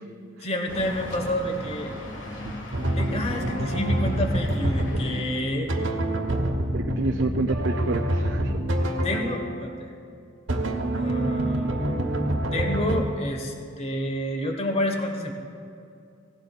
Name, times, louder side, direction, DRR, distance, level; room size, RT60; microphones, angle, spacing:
voice 1, 0.4-1.9 2.9-5.7 8.4-8.5 9.0-9.9 10.9-12.0 12.5-15.3, left 1 dB, 35° left, 3 dB, 1.3 m, -29 dB
sound 1, 0.7-5.6, left 1 dB, 70° left, 1.6 m, -36 dB
sound 2, 2.7-9.7 10.5-13.0, right 1 dB, 80° right, 1.2 m, -26 dB
voice 2, 6.7-8.5, right 3 dB, 65° right, 4 dB, 0.5 m, -29 dB
17.5 x 16.5 x 2.4 m, 2.5 s
head